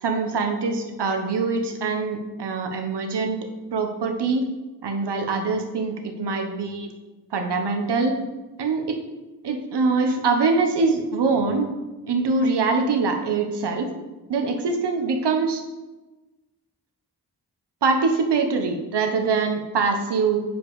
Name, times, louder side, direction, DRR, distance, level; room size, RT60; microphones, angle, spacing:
voice 1, 0.0-3.4 3.7-4.4 4.8-6.9 7.3-8.2 8.6-9.0 9.4-11.7 12.1-13.9 14.3-15.6 17.8-20.4, right 4 dB, 90° right, 5 dB, 1.2 m, -23 dB
9.3 x 5.2 x 4.9 m, 1.1 s
cardioid pair, 60°, 40 cm